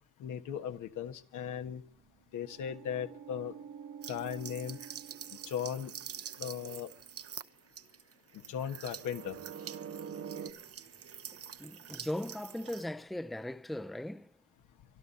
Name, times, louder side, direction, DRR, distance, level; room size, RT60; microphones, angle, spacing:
voice 1, 0.2-1.8 2.3-3.5 4.1-4.8 5.5-5.9 6.4-6.9 8.5-9.4, left 8 dB, 85° left, 1.6 m, -37 dB
sound 1, 1.5-6.4 8.9-10.5, right 7 dB, 75° right, 1.9 m, -47 dB
sound 2, 4.0-12.9, right 8 dB, 50° right, 1.0 m, -47 dB
voice 2, 11.6-14.4, left 1 dB, ahead, 0.6 m, -38 dB
26.0 x 11.5 x 4.1 m
cardioid pair, 90°, 30 cm